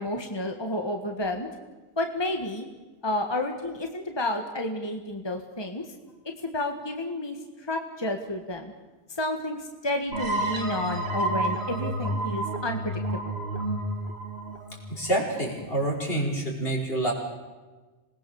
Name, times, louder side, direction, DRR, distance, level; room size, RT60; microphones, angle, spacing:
voice 1, 0.0-1.5 2.0-2.6 3.0-5.8 6.4-8.7 9.2-12.9, left 1 dB, 25° left, 4 dB, 1.6 m, -30 dB
sound 1, 10.1-15.6, right 1 dB, 85° right, 2.4 m, -30 dB
voice 2, 14.9-17.1, right 1 dB, 70° left, -2 dB, 5.5 m, -27 dB
26.5 x 20.0 x 7.1 m, 1.3 s
omnidirectional pair, 1.0 m